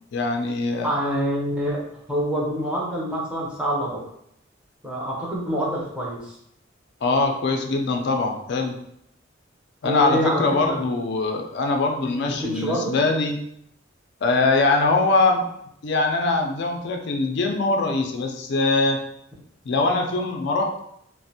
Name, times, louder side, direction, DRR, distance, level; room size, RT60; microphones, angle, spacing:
voice 1, 0.1-0.9 7.0-8.8 9.8-13.4 14.2-15.4 15.8-19.0 19.7-20.8, left 3 dB, 60° left, 3 dB, 0.4 m, -22 dB
voice 2, 0.8-1.8 2.1-4.0 4.8-6.4 9.8-10.8 12.0-13.0, equal, 5° right, -4 dB, 0.5 m, -26 dB
2.5 x 2.0 x 2.7 m, 0.75 s
head